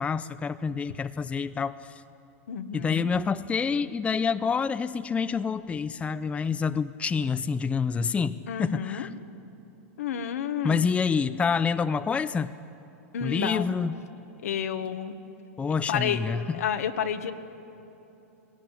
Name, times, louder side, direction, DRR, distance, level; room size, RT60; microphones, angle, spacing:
voice 1, 0.0-1.8 2.7-9.1 10.6-12.5 13.2-14.0 15.6-16.6, left 5 dB, 15° left, 12 dB, 0.5 m, -27 dB
voice 2, 2.5-3.1 8.5-9.1 10.0-10.8 13.1-13.7 14.4-15.1 15.9-16.2 16.5-17.3, left 8 dB, 80° left, 8 dB, 1.4 m, -30 dB
21.0 x 17.5 x 9.9 m, 3.0 s
hypercardioid pair, 115°, 8 cm